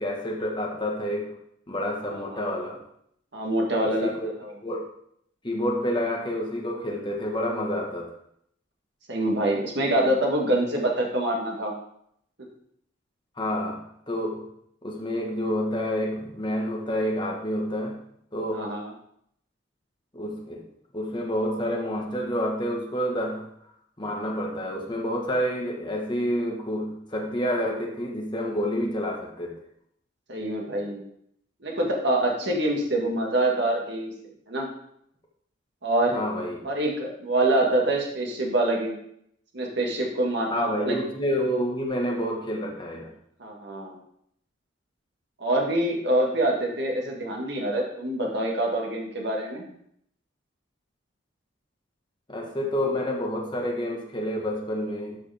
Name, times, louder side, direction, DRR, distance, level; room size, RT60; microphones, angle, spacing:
voice 1, 0.0-1.3 1.7-2.8 4.0-4.3 4.6-4.8 5.4-8.1 13.4-14.5 14.8-18.0 18.3-18.7 20.1-20.6 20.9-23.5 24.0-29.5 36.1-36.6 40.5-43.1 52.3-55.2, equal, 25° left, -1 dB, 1.4 m, -28 dB
voice 2, 2.0-2.5 3.3-4.1 4.4-4.5 9.1-11.7 12.4-12.5 18.5-18.9 30.3-31.0 31.6-34.1 34.5-34.7 35.8-36.2 36.6-39.0 39.5-41.0 43.4-43.9 45.4-49.6, right 1 dB, 60° right, 0 dB, 1.8 m, -25 dB
12.0 x 5.1 x 3.5 m, 0.71 s
head